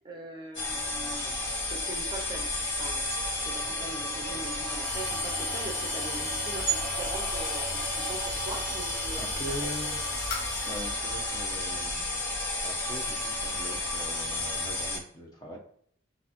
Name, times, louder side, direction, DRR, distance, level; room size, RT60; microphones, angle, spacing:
voice 1, 0.0-1.4 1.7-3.0 3.4-9.2 9.5-10.3, right 2 dB, 25° right, 1 dB, 0.6 m, -42 dB
sound 1, 0.5-15.0, left 1 dB, 70° left, 1.1 m, -32 dB
sound 2, 4.8-10.9, left 2 dB, 50° left, 0.9 m, -42 dB
voice 2, 9.2-10.0 10.6-12.0 12.6-15.6, equal, 20° left, 0 dB, 0.7 m, -41 dB
6.4 x 2.6 x 2.9 m, 0.62 s
head